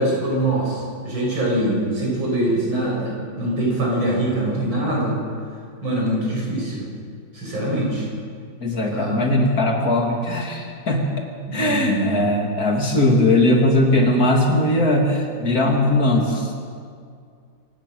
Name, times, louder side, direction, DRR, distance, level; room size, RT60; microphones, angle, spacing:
voice 1, 0.0-5.2 5.8-6.8 7.3-8.1 8.9-9.2 11.5-12.4, right 1 dB, 80° right, -3 dB, 7.3 m, -23 dB
voice 2, 8.6-11.1 11.5-16.5, left 1 dB, 45° left, 1 dB, 3.3 m, -19 dB
26.5 x 16.5 x 6.6 m, 2.3 s
omnidirectional pair, 2.1 m